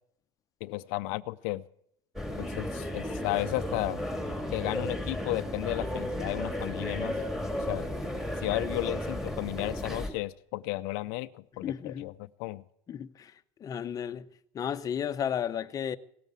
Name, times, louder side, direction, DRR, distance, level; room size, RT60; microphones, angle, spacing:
voice 1, 0.6-1.6 2.4-4.0 4.5-7.2 7.7-7.9 8.4-12.1 12.4-12.6, left 20 dB, 70° left, 0.5 m, -33 dB
sound 1, 2.2-10.1, left 1 dB, 5° right, 2.4 m, -34 dB
voice 2, 11.6-12.1 12.9-13.3 13.6-14.3 14.5-16.0, left 8 dB, 30° left, 0.7 m, -33 dB
17.5 x 9.2 x 8.1 m
supercardioid pair, 135°, 13 cm